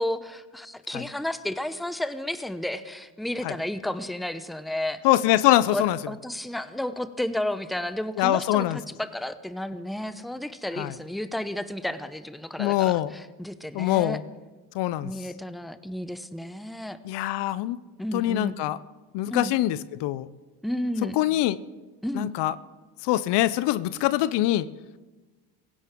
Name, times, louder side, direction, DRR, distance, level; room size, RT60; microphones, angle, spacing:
voice 1, 0.0-5.0 5.7-14.2 15.0-17.0 18.0-18.5 19.3-19.5 20.6-21.2 22.0-22.3, left 1 dB, ahead, 12 dB, 0.8 m, -32 dB
voice 2, 5.0-6.0 8.2-8.8 10.8-10.9 12.6-13.1 13.7-14.2 14.7-15.1 17.0-17.8 18.1-18.8 19.1-20.3 21.2-21.6 22.1-22.5 23.0-24.7, left 15 dB, 65° left, 17 dB, 0.7 m, -23 dB
17.0 x 16.0 x 3.7 m, 1.2 s
supercardioid pair, 70°, 44 cm